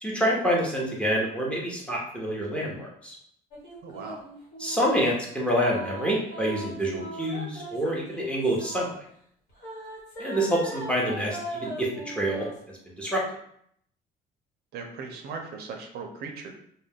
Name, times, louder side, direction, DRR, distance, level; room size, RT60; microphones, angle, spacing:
voice 1, 0.0-3.1 4.6-8.9 10.2-11.9 12.2-12.5 12.9-13.2, equal, 5° left, -3 dB, 0.8 m, -27 dB
sound 1, 3.5-5.1 5.7-8.9 9.6-12.6, equal, 75° left, 1.2 m, -39 dB
voice 2, 3.8-4.2 14.7-16.5, right 5 dB, 65° right, 3 dB, 0.5 m, -38 dB
2.2 x 2.2 x 3.4 m, 0.68 s
cardioid pair, 110°, 17 cm